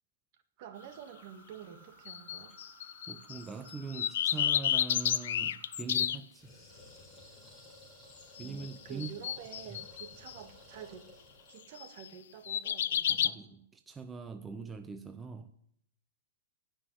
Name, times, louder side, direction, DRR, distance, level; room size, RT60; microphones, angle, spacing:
sound 1, 0.6-5.8, right 3 dB, 35° right, 2.7 m, -58 dB
voice 1, 0.6-2.5 8.4-11.1 11.5-13.4, right 9 dB, 50° right, 8 dB, 1.8 m, -49 dB
sound 2, 2.1-3.4 3.7-6.2 8.4-8.7 9.0-10.3 11.8-12.1 12.5-13.3, left 10 dB, 70° left, 0.5 m, -31 dB
voice 2, 3.1-6.5 8.4-9.1 9.7-9.8 13.1-15.5, right 5 dB, 10° right, 8 dB, 0.6 m, -42 dB
sound 3, 6.4-11.7, left 1 dB, 5° left, 4.1 m, -55 dB
15.5 x 5.7 x 9.8 m, 0.72 s
hypercardioid pair, 145°, 0 cm